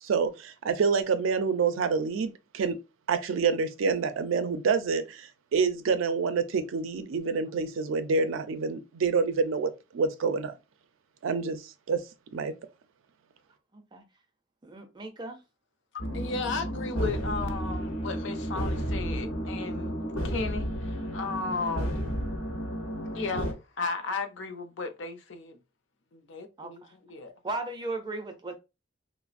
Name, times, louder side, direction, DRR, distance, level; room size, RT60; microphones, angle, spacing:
voice 1, 0.0-2.8 3.1-10.5 11.2-12.0 12.3-12.5, right 5 dB, 90° right, 0.4 m, -27 dB
voice 2, 13.7-14.0 14.6-15.4 26.6-26.9 27.4-28.6, right 2 dB, 20° right, 0.4 m, -36 dB
voice 3, 15.9-20.0 20.2-21.9 23.1-25.6 26.1-27.3, left 4 dB, 70° left, 0.5 m, -35 dB
sound 1, 16.0-23.5, equal, 85° left, 0.9 m, -32 dB
3.1 x 2.0 x 2.4 m
head